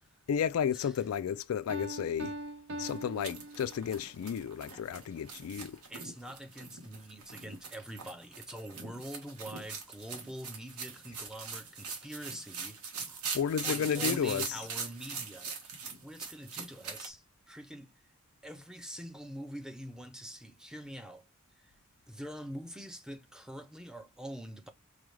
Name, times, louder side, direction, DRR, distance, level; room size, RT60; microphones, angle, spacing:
voice 1, 0.3-2.3 2.8-5.8 13.3-14.5, left 7 dB, 70° left, 0.3 m, -32 dB
Piano, 1.7-4.2, right 1 dB, 50° right, 0.6 m, -42 dB
sound 1, 2.8-17.1, right 5 dB, 85° right, 1.2 m, -41 dB
voice 2, 5.9-13.2 13.6-17.9 18.4-21.3 21.6-21.7 22.1-24.7, equal, 5° right, 0.5 m, -45 dB
4.9 x 2.3 x 3.0 m
head